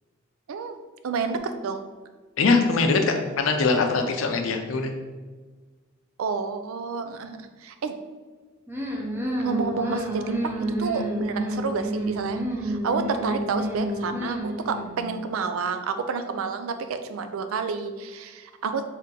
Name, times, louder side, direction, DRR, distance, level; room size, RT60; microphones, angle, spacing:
voice 1, 1.0-1.8 6.2-8.0 9.4-10.5 10.8-18.8, right 5 dB, 90° right, 8 dB, 0.4 m, -29 dB
voice 2, 2.4-4.9, left 3 dB, 70° left, 5 dB, 0.5 m, -22 dB
sound 1, 8.7-15.1, right 1 dB, 10° right, 0.5 m, -30 dB
3.4 x 2.8 x 3.8 m, 1.4 s
head